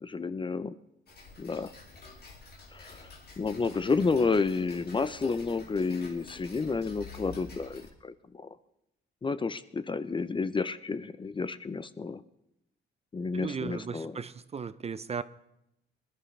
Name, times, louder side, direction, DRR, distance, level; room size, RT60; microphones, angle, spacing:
voice 1, 0.0-0.7 1.4-1.7 2.7-3.1 3.4-8.5 9.2-12.2 13.1-14.2, left 4 dB, 25° left, 14 dB, 0.6 m, -31 dB
Tick-tock, 1.1-7.9, left 4 dB, 55° left, 2.5 m, -49 dB
voice 2, 13.3-15.2, right 6 dB, 30° right, 15 dB, 0.5 m, -36 dB
20.5 x 12.0 x 3.3 m, 0.83 s
cardioid pair, 90°, 20 cm